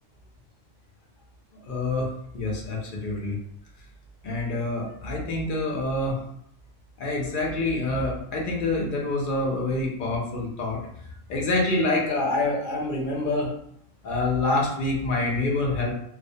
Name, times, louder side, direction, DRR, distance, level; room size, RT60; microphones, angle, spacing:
voice 1, 1.6-2.1 2.3-3.4 4.2-6.2 7.0-10.8 11.3-13.5 14.0-15.9, left 2 dB, 60° left, -2 dB, 0.6 m, -26 dB
2.4 x 2.0 x 2.6 m, 0.72 s
omnidirectional pair, 1.3 m